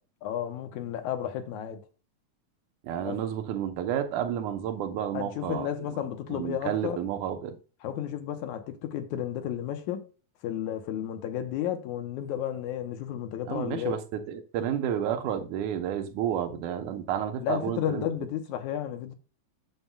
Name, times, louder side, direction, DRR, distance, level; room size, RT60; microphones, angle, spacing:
voice 1, 0.2-1.8 3.0-3.2 5.1-7.0 7.8-10.1 10.4-14.0 17.4-19.1, left 10 dB, 85° left, 2.4 m, -32 dB
voice 2, 2.8-5.7 6.3-7.6 13.5-18.1, right 9 dB, 90° right, 2.4 m, -31 dB
9.4 x 7.3 x 2.3 m
omnidirectional pair, 3.3 m